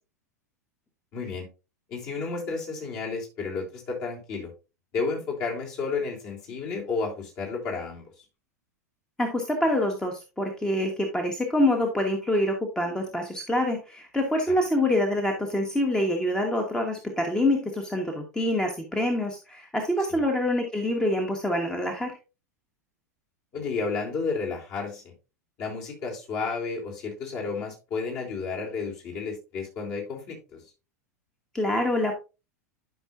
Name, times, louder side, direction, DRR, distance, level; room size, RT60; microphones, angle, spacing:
voice 1, 1.1-1.5 1.9-4.5 4.9-8.1 14.5-14.6 20.1-20.2 23.5-25.1 25.6-30.4, left 4 dB, 40° left, -2 dB, 3.3 m, -32 dB
voice 2, 9.2-22.1 31.5-32.1, left 1 dB, 5° left, 3 dB, 1.3 m, -26 dB
12.0 x 5.5 x 2.5 m, 0.29 s
figure-of-eight pair, 90°, 9 cm